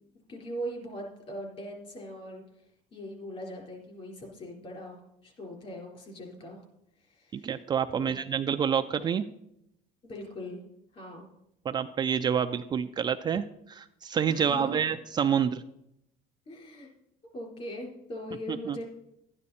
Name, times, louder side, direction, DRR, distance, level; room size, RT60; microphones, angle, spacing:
voice 1, 0.3-2.4 2.9-6.6 7.0-7.5 7.9-8.2 10.0-10.6 10.9-11.3 14.3-14.8 16.5-16.9 17.3-18.8, equal, 40° left, 0 dB, 4.1 m, -40 dB
voice 2, 7.3-9.2 11.6-15.6 18.5-18.8, right 8 dB, 25° right, 8 dB, 0.3 m, -28 dB
12.5 x 9.7 x 4.2 m, 0.83 s
cardioid pair, 145°, 16 cm